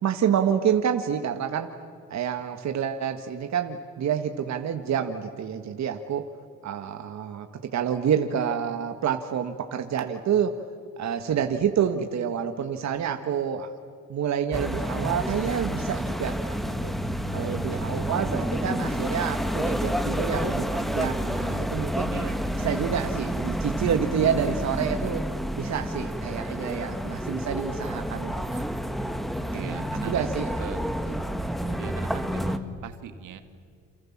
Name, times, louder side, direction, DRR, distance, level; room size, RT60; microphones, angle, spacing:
voice 1, 0.0-1.7 2.1-6.3 6.6-10.6 11.0-13.7 14.1-16.9 17.3-22.1 22.6-25.3 25.6-28.6 29.5-29.6 30.0-30.5, right 8 dB, 65° right, 6 dB, 1.7 m, -28 dB
sound 1, 14.5-32.6, equal, ahead, 1.8 m, -29 dB
voice 2, 22.1-22.4 29.5-30.8 31.7-33.4, right 9 dB, 85° right, 8 dB, 2.2 m, -40 dB
29.0 x 27.5 x 7.4 m, 2.2 s
cardioid pair, 90°, 30 cm